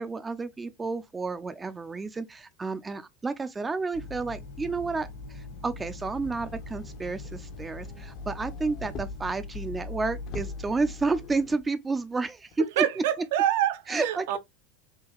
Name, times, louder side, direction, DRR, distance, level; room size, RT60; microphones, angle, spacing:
voice 1, 0.0-12.8 13.9-14.4, right 3 dB, 20° right, 0.4 m, -31 dB
sound 1, 3.9-11.6, left 3 dB, 65° left, 1.5 m, -41 dB
Motor vehicle (road), 6.2-9.4 9.8-9.9 10.2-11.7 12.5-12.6, left 3 dB, 50° left, 0.7 m, -45 dB
voice 2, 12.8-14.4, right 11 dB, 65° right, 0.6 m, -26 dB
3.6 x 2.9 x 2.9 m
figure-of-eight pair, 80°, 0 cm